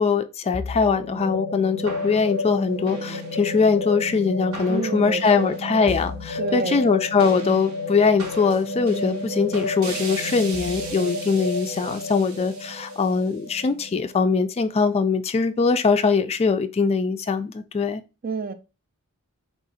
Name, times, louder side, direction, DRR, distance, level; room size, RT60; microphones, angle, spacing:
voice 1, 0.0-18.0, left 5 dB, 30° left, 0.3 m, -22 dB
sound 1, 0.5-15.0, left 1 dB, 85° right, 1.1 m, -31 dB
voice 2, 4.7-5.6 6.4-6.9 18.2-18.5, right 4 dB, 40° right, 0.4 m, -29 dB
3.7 x 2.5 x 4.0 m
head